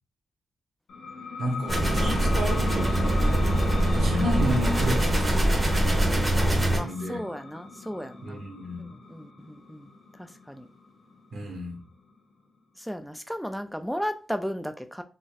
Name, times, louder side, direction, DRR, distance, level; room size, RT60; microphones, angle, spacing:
sound 1, 0.9-12.2, left 4 dB, 80° left, 1.0 m, -38 dB
voice 1, 1.4-7.2 8.2-8.9 11.3-11.8, equal, 70° right, 1.3 m, -33 dB
sound 2, 1.7-6.8, right 1 dB, 25° right, 1.3 m, -23 dB
voice 2, 6.7-8.5 8.8-9.9 10.2-10.7 12.8-15.0, equal, ahead, 0.3 m, -35 dB
4.1 x 3.0 x 2.3 m
cardioid pair, 90°, 0 cm